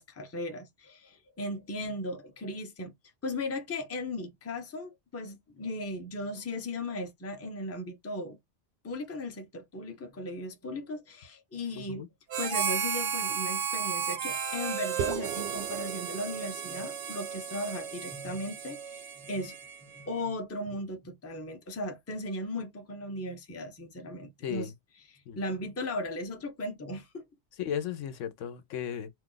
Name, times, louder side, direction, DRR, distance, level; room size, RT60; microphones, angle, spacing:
voice 1, 0.0-2.9 3.2-8.4 8.8-12.1 12.4-19.6 19.8-24.7 25.1-27.2, left 1 dB, 15° left, 0.5 m, -37 dB
voice 2, 11.7-12.1 24.4-24.7 25.3-25.4 27.6-29.1, left 9 dB, 85° left, 1.0 m, -35 dB
Harmonica, 12.3-20.0, right 7 dB, 85° right, 1.2 m, -34 dB
sound 1, 15.0-19.4, right 9 dB, 65° right, 0.8 m, -40 dB
2.7 x 2.4 x 3.7 m
omnidirectional pair, 1.3 m